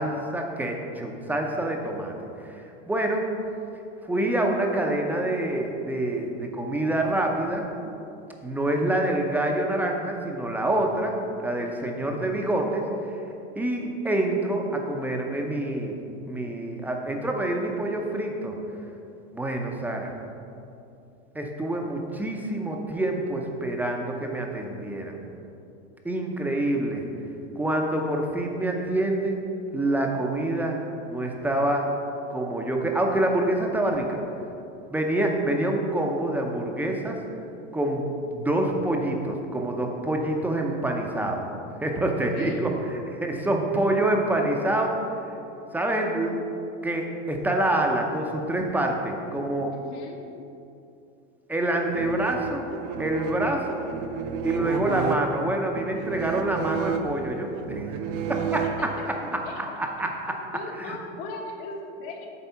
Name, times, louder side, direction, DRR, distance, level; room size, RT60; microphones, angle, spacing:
voice 1, 0.0-3.3 4.0-7.7 8.4-12.8 13.6-16.0 16.3-18.6 19.3-20.1 21.3-25.2 26.0-27.1 27.6-29.4 29.7-31.9 32.3-34.2 34.9-37.2 37.7-41.5 41.8-45.1 45.7-46.4 46.8-49.7 51.5-52.7 53.0-53.8 54.4-57.9 58.3-60.4 60.8-61.0, right 1 dB, 5° right, 1 dB, 0.5 m, -26 dB
voice 2, 42.1-42.6 49.7-50.3 58.6-59.6 60.5-62.3, left 2 dB, 60° left, 1 dB, 1.3 m, -39 dB
sound 1, 51.7-59.2, right 5 dB, 50° right, 0.6 m, -31 dB
8.1 x 3.6 x 5.6 m, 2.7 s
supercardioid pair, 130°, 37 cm